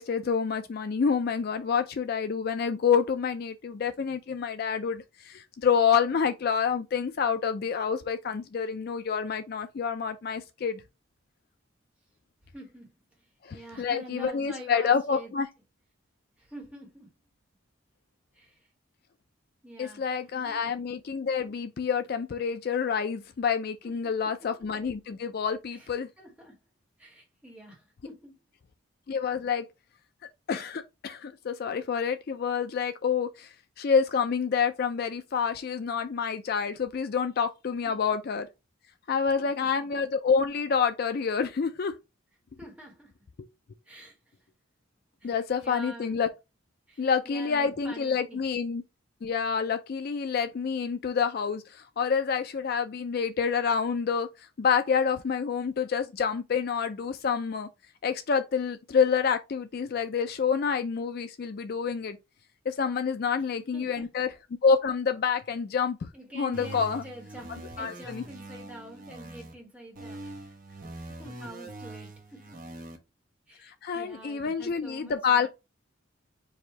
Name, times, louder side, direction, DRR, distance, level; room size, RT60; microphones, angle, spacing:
voice 1, 0.0-10.8 13.4-15.5 19.8-26.1 29.1-29.7 30.5-38.5 39.1-41.9 45.2-46.3 47.0-48.8 49.2-54.3 54.6-57.7 58.0-62.2 62.7-64.3 64.6-66.1 66.3-67.0 67.8-68.2 73.6-75.5, left 6 dB, 50° left, 0.3 m, -28 dB
voice 2, 12.4-12.9 13.2-15.3 16.4-17.1 18.3-18.7 19.6-20.6 23.8-24.5 25.7-25.9 26.2-26.5 27.0-28.3 37.8-38.2 39.4-39.9 42.6-43.1 43.8-44.2 45.2-46.1 46.9-48.4 63.3-64.1 66.1-70.6 70.8-70.9 71.2-72.6 73.5-75.5, right 1 dB, 5° right, 1.5 m, -46 dB
sound 1, 66.5-69.5 69.9-73.0, right 2 dB, 40° right, 0.8 m, -43 dB
4.7 x 2.6 x 4.3 m
head